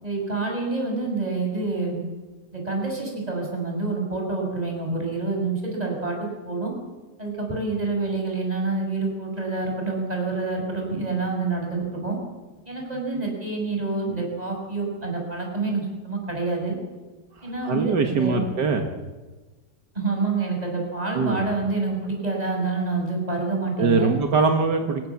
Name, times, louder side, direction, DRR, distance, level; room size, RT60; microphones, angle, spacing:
voice 1, 0.0-2.0 2.5-6.7 7.2-12.2 12.7-16.8 17.4-18.4 19.9-24.1, right 3 dB, 20° right, 0 dB, 6.3 m, -27 dB
voice 2, 17.6-18.8 21.2-21.5 23.8-25.1, right 4 dB, 75° right, 5 dB, 2.2 m, -22 dB
27.0 x 15.5 x 7.2 m, 1.2 s
omnidirectional pair, 1.8 m